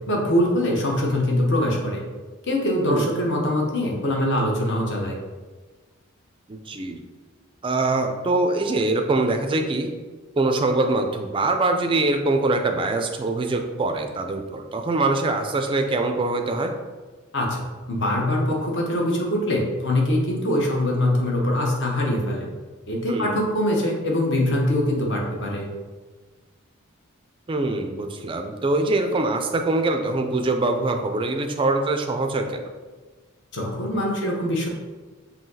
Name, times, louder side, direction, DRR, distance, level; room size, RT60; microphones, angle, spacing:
voice 1, 0.0-2.0 2.5-5.2 17.3-17.6 17.9-22.5 22.9-25.7 33.5-34.7, left 1 dB, 55° left, -1 dB, 0.8 m, -23 dB
voice 2, 6.5-7.0 7.6-9.9 10.4-16.7 23.1-23.4 27.5-32.7, right 2 dB, 25° right, 5 dB, 0.3 m, -23 dB
5.5 x 2.8 x 2.7 m, 1.3 s
head